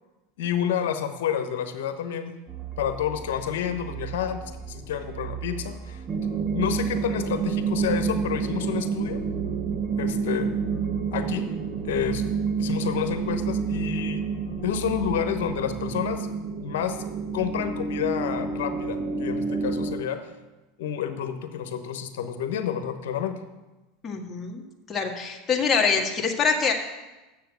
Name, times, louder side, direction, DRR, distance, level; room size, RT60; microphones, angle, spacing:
voice 1, 0.4-2.3 2.8-4.4 4.7-6.0 6.5-9.2 10.0-10.5 11.1-11.5 11.9-12.2 12.6-14.2 14.6-16.3 16.6-17.0 17.3-20.2 20.8-23.3, left 9 dB, 70° left, 8 dB, 1.0 m, -29 dB
sound 1, 2.5-16.2, right 7 dB, 20° right, 1.5 m, -39 dB
sound 2, 6.1-20.0, right 5 dB, 40° right, 1.4 m, -29 dB
voice 2, 24.0-24.6 24.9-26.7, left 5 dB, 25° left, 1 dB, 1.7 m, -24 dB
7.4 x 6.9 x 7.8 m, 1.1 s
hypercardioid pair, 90°, 0 cm